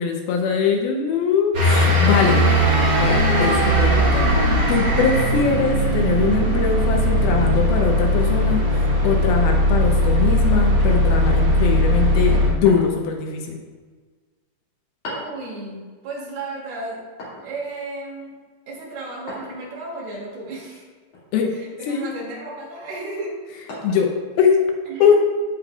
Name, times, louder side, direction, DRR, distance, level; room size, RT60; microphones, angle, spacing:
voice 1, 0.0-2.4 3.0-4.3 4.7-8.6 9.0-13.6 21.3-21.5 21.9-22.1 23.8-24.1 24.4-24.6 25.0-25.1, left 6 dB, 75° left, 2 dB, 2.5 m, -21 dB
sound 1, 1.5-12.5, equal, 45° right, 1.6 m, -18 dB
sound 2, 12.6-13.2 15.0-15.4 17.2-17.5 19.3-19.6 21.1-21.5 22.1-22.3 23.7-24.1, left 1 dB, 55° left, 3.4 m, -36 dB
voice 2, 15.1-17.0 17.4-18.3 18.7-20.9 21.5-23.4 24.9-25.1, right 2 dB, 75° right, -4 dB, 4.1 m, -33 dB
15.5 x 5.3 x 2.4 m, 1.5 s
omnidirectional pair, 4.6 m